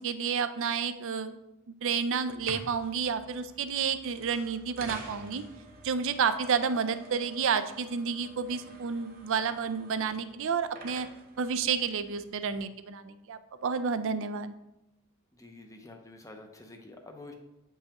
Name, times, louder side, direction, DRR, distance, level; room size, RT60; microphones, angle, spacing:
voice 1, 0.0-1.4 1.7-5.4 5.8-11.1 11.4-14.5, right 6 dB, 60° right, 11 dB, 0.4 m, -30 dB
sound 1, 2.3-12.6, right 2 dB, 40° right, 0.8 m, -49 dB
voice 2, 15.3-17.3, left 2 dB, 15° left, 4 dB, 0.6 m, -48 dB
8.2 x 5.4 x 2.9 m, 0.92 s
head